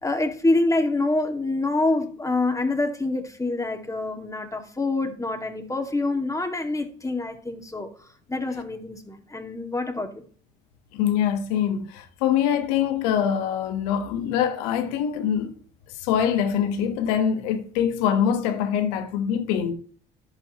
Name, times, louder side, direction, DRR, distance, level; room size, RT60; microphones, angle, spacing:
voice 1, 0.0-7.9 8.3-10.2, left 2 dB, 15° left, 2.1 m, -26 dB
voice 2, 10.9-15.5 16.0-19.7, left 8 dB, 85° left, 1.3 m, -24 dB
11.0 x 8.2 x 3.0 m
hypercardioid pair, 60°, 21 cm